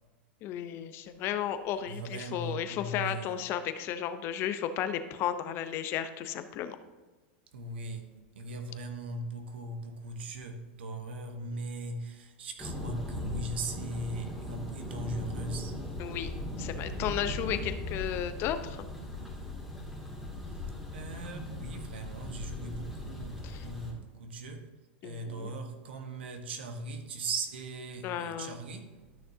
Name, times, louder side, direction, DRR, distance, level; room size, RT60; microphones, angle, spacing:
voice 1, 0.4-6.8 16.0-16.3 16.6-18.8 23.4-23.6 25.0-25.5 28.0-28.6, left 10 dB, 45° left, 0.7 m, -34 dB
voice 2, 1.8-3.4 7.5-8.1 8.3-15.8 16.7-16.8 20.5-20.6 20.9-24.7 25.0-29.2, right 2 dB, 90° right, 1.2 m, -39 dB
Thunder, 12.6-23.9, left 1 dB, 5° right, 2.2 m, -39 dB
12.5 x 6.4 x 2.8 m
supercardioid pair, 120°, 6 cm